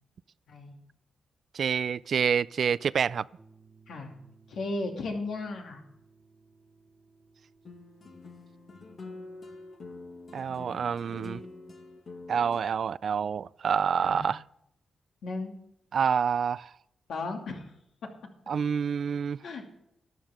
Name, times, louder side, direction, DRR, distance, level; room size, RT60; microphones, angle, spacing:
voice 1, 1.5-3.3 10.3-11.4 12.3-14.4 15.9-16.7 18.5-19.4, right 7 dB, 60° right, 0.3 m, -27 dB
sound 1, 3.4-11.4, right 4 dB, 20° right, 1.2 m, -61 dB
voice 2, 4.5-5.8 14.0-14.3 15.2-15.5 17.1-17.7 19.4-19.8, left 3 dB, 80° left, 2.7 m, -35 dB
sound 2, 7.7-12.6, left 3 dB, 45° left, 1.6 m, -46 dB
13.5 x 11.0 x 3.7 m
cardioid pair, 100°, 0 cm